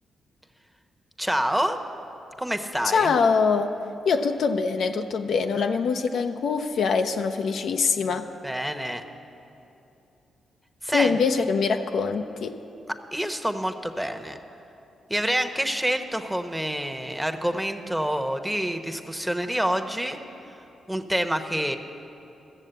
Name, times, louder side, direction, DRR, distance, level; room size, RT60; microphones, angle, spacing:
voice 1, 1.2-1.8 2.4-3.1 8.4-9.0 10.8-11.2 13.1-14.4 15.1-20.2 20.9-21.8, equal, 5° right, 6 dB, 1.0 m, -27 dB
voice 2, 2.8-3.7 4.1-8.3 10.9-12.6, left 5 dB, 70° left, 6 dB, 0.6 m, -23 dB
13.5 x 7.2 x 8.0 m, 2.8 s
supercardioid pair, 50°, 0 cm